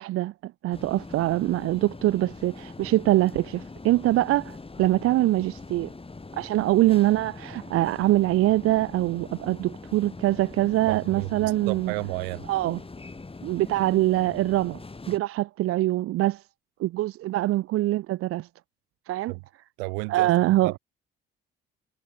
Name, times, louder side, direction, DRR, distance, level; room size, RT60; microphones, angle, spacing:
voice 1, 0.0-5.9 6.3-11.9 12.5-12.8 13.4-14.8 15.1-16.4 16.8-18.5 19.1-19.3 20.1-20.7, right 16 dB, 50° right, 0.7 m, -24 dB
sound 1, 0.7-15.2, left 3 dB, 20° left, 3.2 m, -42 dB
voice 2, 10.9-12.5 19.3-19.4 19.8-20.8, right 35 dB, 70° right, 3.5 m, -33 dB
figure-of-eight pair, 45°, 29 cm